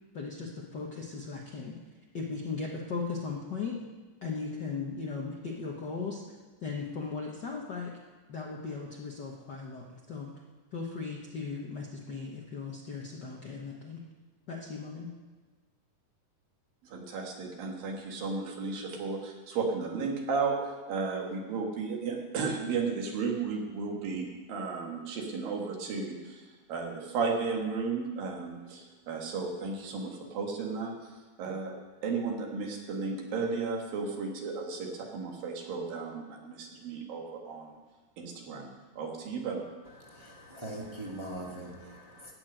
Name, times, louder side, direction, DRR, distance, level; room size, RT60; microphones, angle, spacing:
voice 1, 0.1-1.8 2.1-3.8 4.2-6.2 6.6-7.9 8.3-10.3 10.7-14.0 14.5-15.1, left 4 dB, 80° left, -2 dB, 0.9 m, -37 dB
voice 2, 16.8-30.9 31.4-31.7 32.0-37.8 38.2-38.7 39.0-39.7, right 4 dB, 80° right, 1 dB, 3.6 m, -34 dB
voice 3, 40.0-42.3, right 1 dB, 15° right, -3 dB, 1.1 m, -42 dB
14.0 x 6.1 x 9.1 m, 1.3 s
omnidirectional pair, 4.0 m